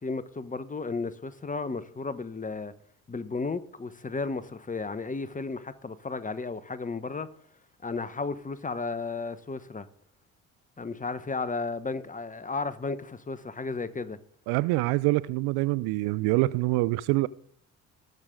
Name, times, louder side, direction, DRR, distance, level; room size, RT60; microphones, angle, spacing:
voice 1, 0.0-2.7 3.1-7.3 7.8-9.9 10.8-14.2, left 4 dB, 20° left, 1.0 m, -34 dB
voice 2, 14.5-17.3, right 20 dB, 60° right, 0.6 m, -25 dB
19.5 x 6.7 x 3.7 m
hypercardioid pair, 55°, 44 cm